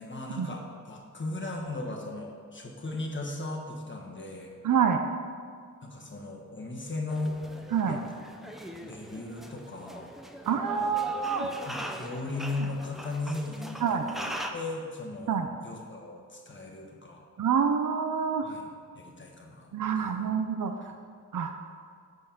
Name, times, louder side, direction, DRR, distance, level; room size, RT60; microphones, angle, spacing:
voice 1, 0.0-4.5 5.8-7.4 7.8-8.2 8.8-10.1 11.6-17.2 18.4-18.7 18.9-20.3 20.8-20.9, left 2 dB, 35° left, 0 dB, 1.3 m, -37 dB
voice 2, 4.6-5.0 7.7-8.0 10.5-11.5 13.8-14.0 15.3-15.5 17.4-18.5 19.7-20.9 21.3-21.5, right 7 dB, 65° right, 6 dB, 0.5 m, -27 dB
sound 1, 7.1-14.5, equal, ahead, 0.5 m, -41 dB
7.3 x 6.4 x 5.7 m, 2.1 s
wide cardioid pair, 135°, 34 cm